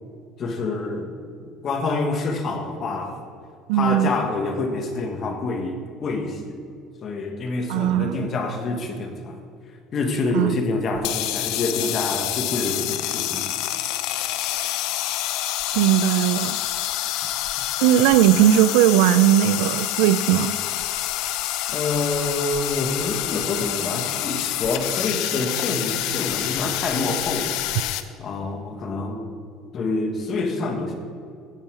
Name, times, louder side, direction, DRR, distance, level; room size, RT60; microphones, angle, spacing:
voice 1, 0.4-1.1 1.6-3.2 3.7-6.6 7.0-9.4 9.9-13.5 21.7-27.6 28.2-29.3 29.7-30.9, left 3 dB, 35° left, 1.5 m, -27 dB
voice 2, 3.7-4.1 7.7-8.3 10.3-10.5 15.7-16.6 17.8-20.5, right 12 dB, 90° right, 0.4 m, -18 dB
sound 1, 10.9-28.0, left 13 dB, 70° left, 0.6 m, -27 dB
15.5 x 5.6 x 6.2 m
cardioid pair, 150°, 0 cm